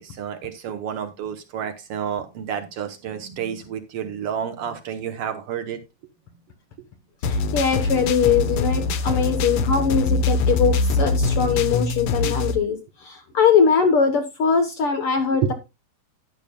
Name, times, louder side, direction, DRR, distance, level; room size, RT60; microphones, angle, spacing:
voice 1, 0.0-5.8 9.0-9.3 15.3-15.5, right 8 dB, 70° right, 7 dB, 1.4 m, -30 dB
sound 1, 7.2-12.6, left 3 dB, 80° left, 1.2 m, -23 dB
voice 2, 7.2-15.5, left 6 dB, 65° left, 7 dB, 1.4 m, -21 dB
12.0 x 11.0 x 2.2 m, 0.24 s
omnidirectional pair, 3.7 m